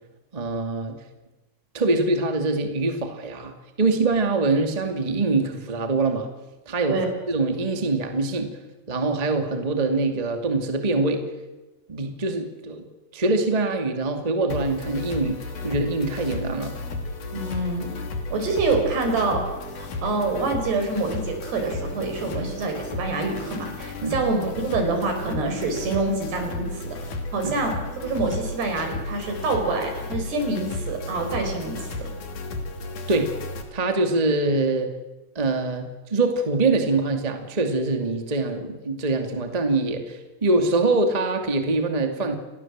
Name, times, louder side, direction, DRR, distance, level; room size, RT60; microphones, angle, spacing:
voice 1, 0.3-1.0 1.7-6.3 6.6-7.0 7.3-8.5 8.9-11.2 11.9-12.8 13.1-16.7 22.4-22.5 24.0-24.2 27.4-27.5 33.1-33.3 33.7-34.9 35.3-42.3, right 3 dB, 15° right, 5 dB, 1.4 m, -24 dB
sound 1, 14.5-33.6, left 2 dB, 50° left, 3.8 m, -33 dB
voice 2, 17.3-17.9 18.3-19.4 19.8-26.8 27.3-27.7 28.0-32.1, right 3 dB, 75° right, 4 dB, 7.1 m, -26 dB
28.5 x 20.5 x 7.5 m, 1.1 s
omnidirectional pair, 4.7 m